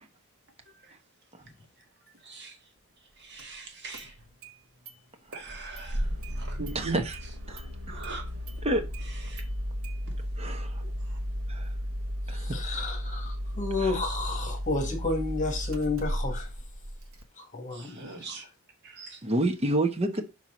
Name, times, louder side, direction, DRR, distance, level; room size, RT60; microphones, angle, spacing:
voice 1, 2.2-2.6 3.2-4.1 5.3-7.0 7.5-7.6 7.9-8.2 9.3-9.4 10.8-11.2 17.7-18.5 18.8-19.2, right 3 dB, 55° right, 1.8 m, -40 dB
Engine starting, 3.4-3.5 3.9-4.5 4.9-5.0 5.3-17.2, equal, 70° right, 1.2 m, -34 dB
voice 2, 6.7-7.2 7.5-8.0 8.6-8.9 10.4-10.8 11.5-11.7 12.3-12.8 13.8-13.9 17.9-18.2 19.2-20.2, right 1 dB, 30° right, 1.0 m, -29 dB
voice 3, 12.3-16.5 17.5-18.0, left 3 dB, 35° left, 2.0 m, -31 dB
5.6 x 4.6 x 5.7 m
head